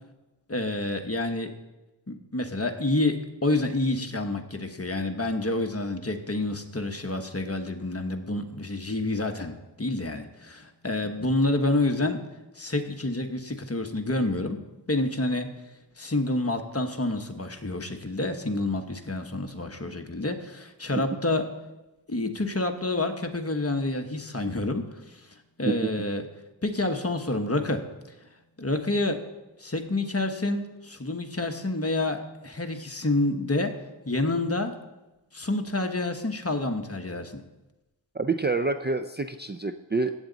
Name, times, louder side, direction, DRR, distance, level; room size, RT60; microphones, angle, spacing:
voice 1, 0.5-1.5 2.1-12.2 12.5-14.6 14.9-15.5 16.0-21.5 22.1-25.3 25.6-26.2 26.6-27.8 28.6-29.2 29.6-34.8 35.3-37.4, left 2 dB, 30° left, 5 dB, 1.2 m, -28 dB
voice 2, 38.1-40.1, right 3 dB, 25° right, 9 dB, 0.5 m, -27 dB
15.5 x 8.4 x 4.0 m, 1.0 s
wide cardioid pair, 60°, 45 cm